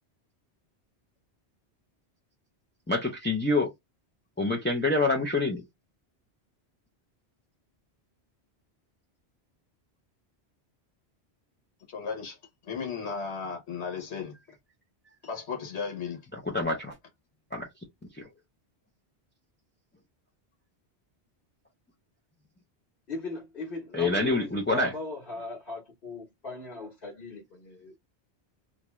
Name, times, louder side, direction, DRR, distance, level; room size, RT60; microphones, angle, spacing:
voice 1, 2.9-3.7 4.4-5.6 16.3-16.9 17.5-17.7 18.1-18.3 23.9-24.9, left 2 dB, 20° left, 0.3 m, -26 dB
voice 2, 11.9-12.4 12.6-14.4 15.2-16.2, left 5 dB, 85° left, 1.2 m, -35 dB
voice 3, 23.1-28.0, left 2 dB, 55° left, 1.1 m, -38 dB
2.6 x 2.2 x 3.0 m
omnidirectional pair, 1.1 m